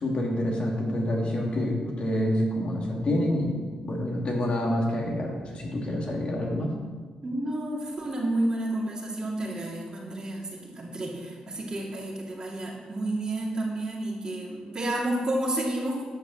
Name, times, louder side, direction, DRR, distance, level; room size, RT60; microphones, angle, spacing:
voice 1, 0.0-6.7, left 1 dB, 50° left, -1 dB, 2.4 m, -27 dB
voice 2, 7.2-16.0, right 1 dB, 35° right, -3 dB, 2.5 m, -30 dB
10.5 x 5.5 x 7.1 m, 1.5 s
cardioid pair, 100°, 2 cm